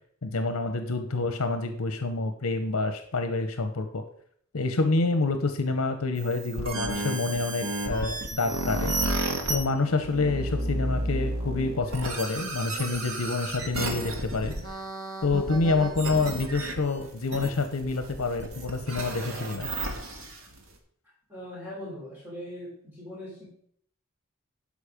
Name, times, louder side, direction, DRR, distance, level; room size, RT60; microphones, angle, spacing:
voice 1, 0.2-4.0 4.5-8.9 9.5-14.5 15.2-19.7, left 3 dB, 80° left, 8 dB, 0.8 m, -27 dB
sound 1, 6.2-20.6, right 1 dB, 70° right, 1.7 m, -32 dB
voice 2, 21.3-23.4, left 1 dB, 10° right, -7 dB, 3.8 m, -40 dB
12.0 x 5.1 x 5.1 m, 0.65 s
head